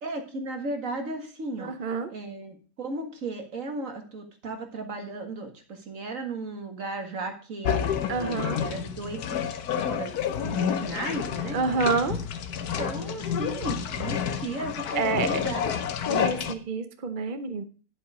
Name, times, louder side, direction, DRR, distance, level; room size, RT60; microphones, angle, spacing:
voice 1, 0.0-1.7 2.1-5.5 5.9-9.2 9.9-10.1 10.4-11.6 12.6-15.7 16.0-16.2, right 2 dB, 60° right, 5 dB, 2.2 m, -35 dB
voice 2, 1.6-2.1 8.1-8.6 11.5-12.2 14.9-15.4 16.1-17.6, right 5 dB, 40° right, 9 dB, 0.9 m, -28 dB
sound 1, 7.6-16.5, left 8 dB, 85° left, 1.4 m, -29 dB
10.5 x 8.2 x 4.9 m, 0.38 s
omnidirectional pair, 1.6 m